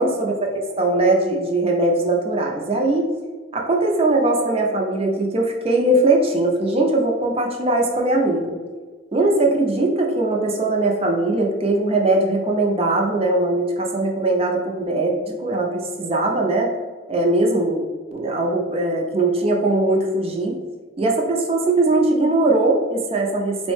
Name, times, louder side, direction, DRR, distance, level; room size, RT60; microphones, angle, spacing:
voice 1, 0.0-3.1 3.5-8.6 9.1-16.7 17.1-17.8 18.1-20.5 21.0-23.7, right 2 dB, 30° right, 0 dB, 0.4 m, -20 dB
3.8 x 2.0 x 3.1 m, 1.5 s
head